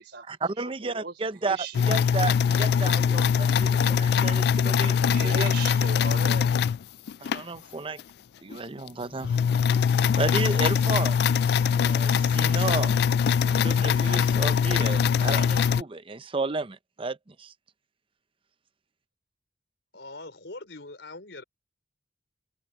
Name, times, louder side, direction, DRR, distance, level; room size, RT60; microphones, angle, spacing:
voice 1, 0.3-1.6 1.9-5.5 7.2-8.0 8.4-9.4 9.8-11.2 11.5-12.9 13.4-17.5, right 3 dB, 30° right, 0.7 m, -33 dB
voice 2, 0.8-1.1 1.4-1.9 5.1-6.6, right 4 dB, 65° right, 4.4 m, -37 dB
sound 1, 1.7-7.4 8.0-8.1 8.5-8.6 8.9-15.8, left 7 dB, 60° left, 0.3 m, -22 dB
voice 3, 19.9-21.4, left 2 dB, 80° left, 4.6 m, -42 dB
head